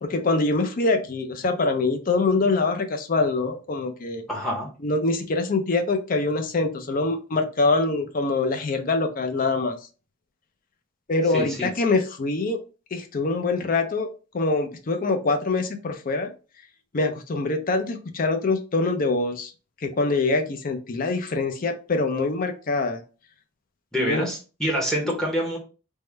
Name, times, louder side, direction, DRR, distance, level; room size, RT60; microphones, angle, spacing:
voice 1, 0.0-4.2 4.8-9.8 11.1-12.6 12.9-14.1 14.3-16.3 16.9-19.5 19.8-23.0 24.0-24.2, left 3 dB, 45° left, 6 dB, 0.5 m, -24 dB
voice 2, 4.3-4.7 11.3-11.7 23.9-25.6, equal, 5° left, -2 dB, 0.7 m, -26 dB
3.6 x 2.1 x 3.1 m, 0.34 s
head